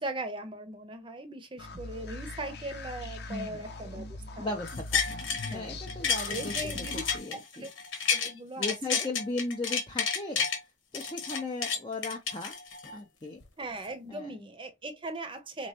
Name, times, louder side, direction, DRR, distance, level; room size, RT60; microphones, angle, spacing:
voice 1, 0.0-4.5 5.4-5.8 6.3-7.0 7.3-7.7 8.1-9.1 13.6-15.7, right 2 dB, 25° right, 0.7 m, -39 dB
sound 1, 1.6-7.2, left 2 dB, 55° left, 0.8 m, -42 dB
voice 2, 3.3-3.6 4.4-7.7 8.6-10.5 10.9-12.6 12.9-13.4 14.1-14.3, left 2 dB, 25° left, 0.6 m, -37 dB
sound 2, 4.7-5.5 5.9-8.3 8.6-10.6 10.9-12.9 13.4-13.5, left 6 dB, 85° left, 1.2 m, -31 dB
4.3 x 3.1 x 2.8 m
head